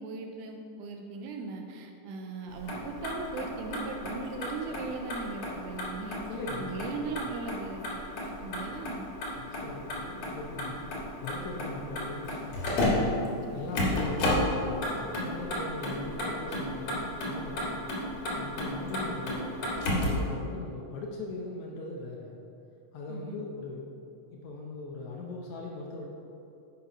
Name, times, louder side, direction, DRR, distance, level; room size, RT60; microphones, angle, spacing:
voice 1, 0.0-6.2 6.6-9.1 13.5-13.8 18.8-19.3 23.1-23.4, right 4 dB, 80° right, 3 dB, 1.9 m, -39 dB
Motor vehicle (road), 2.5-20.3, left 1 dB, 60° left, 2.6 m, -33 dB
voice 2, 6.3-6.9 9.3-12.9 13.5-17.8 18.3-19.6 20.2-22.4 22.9-23.9 24.3-26.1, left 2 dB, 75° left, -1 dB, 1.8 m, -40 dB
8.3 x 5.6 x 5.1 m, 2.7 s
omnidirectional pair, 3.9 m